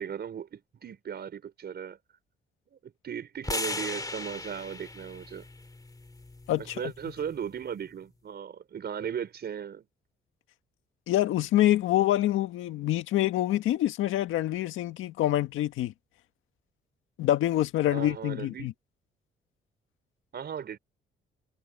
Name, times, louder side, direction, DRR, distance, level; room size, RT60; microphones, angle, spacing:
voice 1, 0.0-2.0 2.7-5.5 6.6-9.9 17.9-18.7 20.3-20.8, right 8 dB, 55° right, 5.2 m, -37 dB
sound 1, 3.4-7.6, left 2 dB, 20° left, 3.1 m, -38 dB
voice 2, 6.5-6.9 11.1-15.9 17.2-18.7, left 13 dB, 85° left, 1.8 m, -26 dB
cardioid pair, 90°, 20 cm